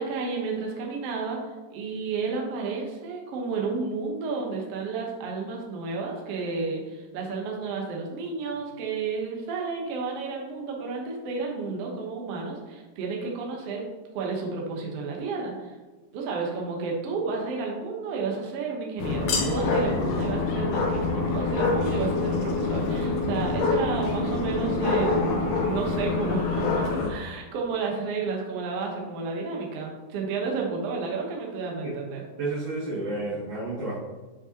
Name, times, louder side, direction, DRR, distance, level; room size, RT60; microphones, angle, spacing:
voice 1, 0.0-1.4 1.7-13.8 14.1-15.7 16.1-32.2, right 4 dB, 80° right, -1 dB, 1.3 m, -31 dB
sound 1, 19.0-27.1, left 3 dB, 70° left, 2.2 m, -26 dB
voice 2, 32.4-33.9, right 2 dB, 45° right, -12 dB, 2.6 m, -31 dB
9.6 x 5.0 x 2.8 m, 1.2 s
omnidirectional pair, 4.3 m